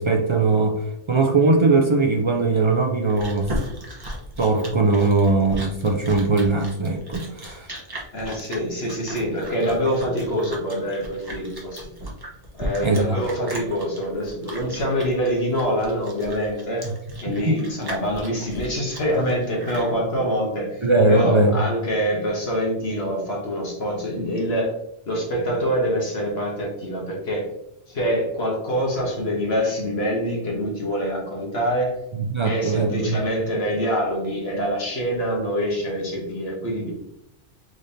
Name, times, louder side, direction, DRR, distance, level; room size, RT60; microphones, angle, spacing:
voice 1, 0.0-3.5 4.4-7.7 12.8-13.2 16.8-16.9 17.3-17.6 20.8-21.6 32.1-33.2, right 3 dB, 50° right, 3 dB, 0.3 m, -20 dB
Chewing mastication, 2.7-19.9, equal, 20° right, 0.9 m, -36 dB
voice 2, 8.1-11.9 12.5-16.8 17.2-24.7 25.1-27.4 27.9-31.9 32.4-36.9, equal, 65° left, -1 dB, 1.4 m, -25 dB
5.1 x 3.8 x 2.7 m, 0.81 s
omnidirectional pair, 1.2 m